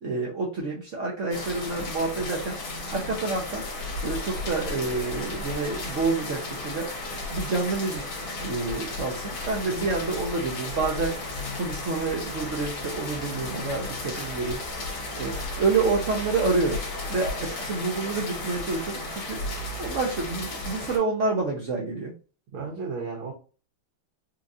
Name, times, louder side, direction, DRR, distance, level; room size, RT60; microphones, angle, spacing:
voice 1, 0.0-2.6 2.9-3.7 4.0-6.9 7.3-11.3 11.5-14.6 15.2-19.4 19.8-22.1, right 3 dB, 65° right, -2 dB, 0.7 m, -28 dB
sound 1, 1.3-21.0, left 2 dB, 75° left, 1.9 m, -34 dB
voice 2, 9.7-10.2 22.5-23.3, right 4 dB, 80° right, -1 dB, 1.8 m, -35 dB
4.4 x 2.4 x 2.6 m, 0.35 s
omnidirectional pair, 2.2 m